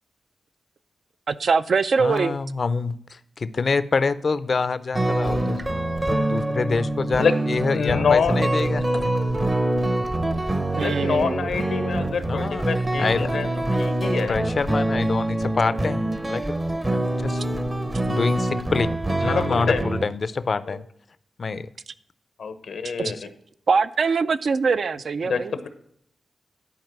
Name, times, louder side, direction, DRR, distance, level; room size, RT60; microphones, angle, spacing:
voice 1, 1.3-2.4 10.7-11.5 23.0-23.1 23.7-25.5, right 5 dB, 60° right, 0.4 m, -22 dB
voice 2, 2.0-5.6 5.9-9.1 12.3-13.3 14.3-16.4 16.9-17.4 18.1-18.9 19.2-20.9 21.4-21.7 23.1-23.2, left 4 dB, 50° left, 0.5 m, -26 dB
sound 1, 4.9-20.1, right 1 dB, 20° right, 0.6 m, -25 dB
voice 3, 7.7-8.4 10.8-13.5 13.8-14.4 19.2-19.9 20.7-20.8 22.4-23.2 25.2-25.7, left 6 dB, 90° left, 0.9 m, -25 dB
11.0 x 4.6 x 6.0 m
wide cardioid pair, 120°, 0 cm